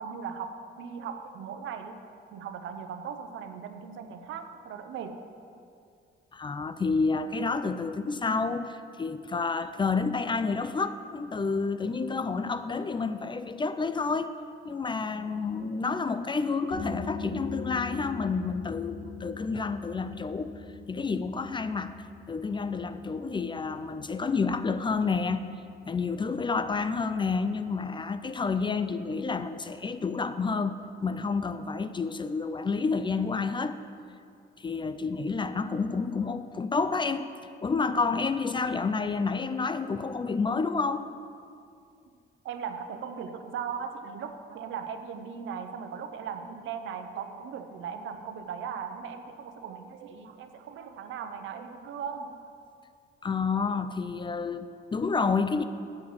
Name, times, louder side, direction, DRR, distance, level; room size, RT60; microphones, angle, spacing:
voice 1, 0.0-2.0 2.3-5.2 42.4-52.5, right 7 dB, 75° right, 8 dB, 0.7 m, -38 dB
voice 2, 6.3-14.3 14.7-20.6 20.9-21.9 22.3-25.4 25.9-30.8 31.0-33.8 34.6-37.3 37.6-41.1 53.2-55.6, left 4 dB, 25° left, 12 dB, 0.4 m, -29 dB
sound 1, 16.7-28.1, left 5 dB, 65° left, 1.9 m, -42 dB
7.6 x 6.2 x 7.1 m, 2.4 s
cardioid pair, 90°, 20 cm